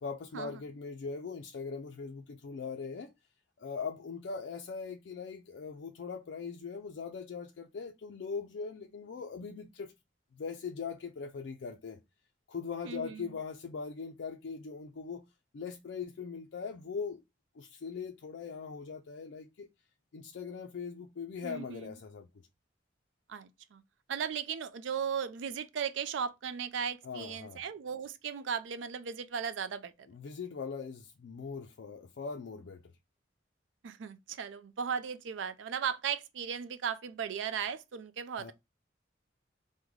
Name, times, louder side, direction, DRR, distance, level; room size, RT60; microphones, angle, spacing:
voice 1, 0.0-3.1 3.6-9.9 10.3-12.0 12.5-15.2 15.5-17.2 17.5-19.7 20.1-22.3 27.0-27.6 30.1-32.9 38.4-38.5, left 5 dB, 70° left, 0.3 m, -40 dB
voice 2, 12.8-13.3 21.4-21.9 23.3-23.8 24.1-29.9 33.8-38.5, right 7 dB, 80° right, 0.4 m, -36 dB
3.6 x 2.1 x 3.1 m
head